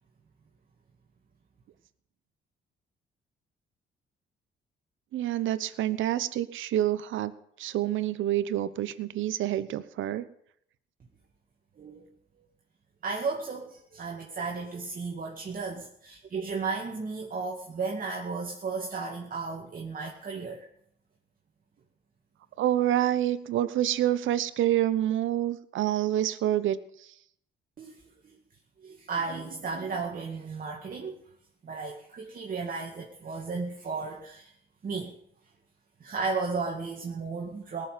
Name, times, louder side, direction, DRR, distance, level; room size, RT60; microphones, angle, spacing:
voice 1, 5.1-7.3 7.6-10.3 22.6-27.1, right 12 dB, 80° right, 15 dB, 1.0 m, -27 dB
voice 2, 11.8-12.1 13.0-20.7 27.8-28.0 28.2-28.4 28.8-31.2 31.6-34.5 34.8-35.1 36.0-37.9, right 4 dB, 45° right, 0 dB, 2.2 m, -34 dB
18.5 x 7.2 x 9.3 m, 0.69 s
cardioid pair, 90°, 20 cm